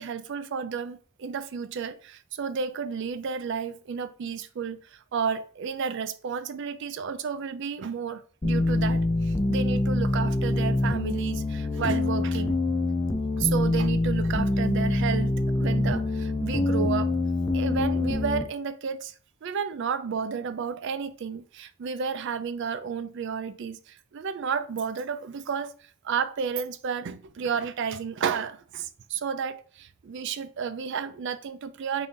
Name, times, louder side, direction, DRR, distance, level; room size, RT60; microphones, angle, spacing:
voice 1, 0.0-12.6 13.4-17.2 17.5-19.1 19.4-25.7 26.0-32.1, right 6 dB, 55° right, 0.3 m, -32 dB
sound 1, 8.4-18.4, left 2 dB, 20° left, 0.4 m, -25 dB
3.8 x 2.6 x 3.6 m
head